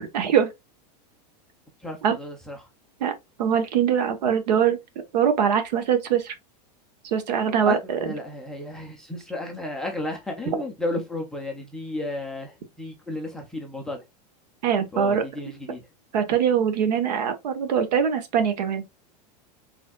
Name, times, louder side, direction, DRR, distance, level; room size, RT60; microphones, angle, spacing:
voice 1, 0.1-0.5 2.0-2.2 3.0-3.1 3.4-4.8 5.1-6.3 7.0-7.8 14.6-15.2 16.1-18.8, right 8 dB, 75° right, 1.2 m, -22 dB
voice 2, 1.8-2.7 7.7-14.0 14.9-15.8, left 2 dB, ahead, 0.4 m, -33 dB
4.4 x 3.4 x 2.3 m
supercardioid pair, 180°, 21 cm